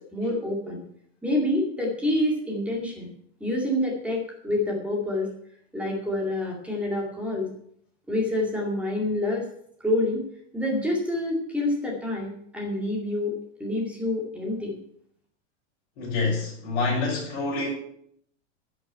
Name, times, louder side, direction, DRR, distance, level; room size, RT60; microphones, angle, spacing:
voice 1, 0.1-0.8 1.2-3.1 3.4-5.3 5.7-7.5 8.1-9.4 9.8-10.3 10.5-13.3 13.6-14.7, left 1 dB, 5° right, -1 dB, 2.3 m, -27 dB
voice 2, 16.0-17.7, left 3 dB, 45° left, -8 dB, 5.6 m, -27 dB
11.0 x 6.4 x 8.4 m, 0.67 s
supercardioid pair, 170°, 37 cm